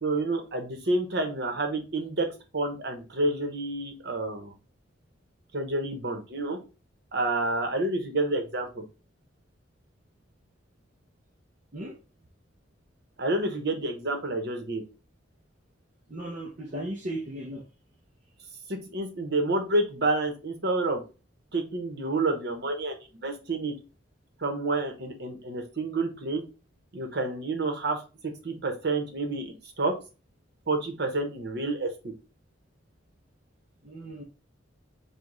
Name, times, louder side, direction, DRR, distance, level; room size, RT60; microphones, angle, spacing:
voice 1, 0.0-2.3 2.5-4.5 5.5-6.6 7.1-8.8 13.2-14.8 18.7-21.0 21.5-23.7 24.4-26.4 26.9-29.9 30.7-32.1, right 2 dB, 65° right, 4 dB, 1.1 m, -29 dB
voice 2, 16.1-17.6 33.8-34.2, right 1 dB, 45° right, -1 dB, 0.7 m, -36 dB
5.1 x 2.4 x 3.8 m, 0.31 s
head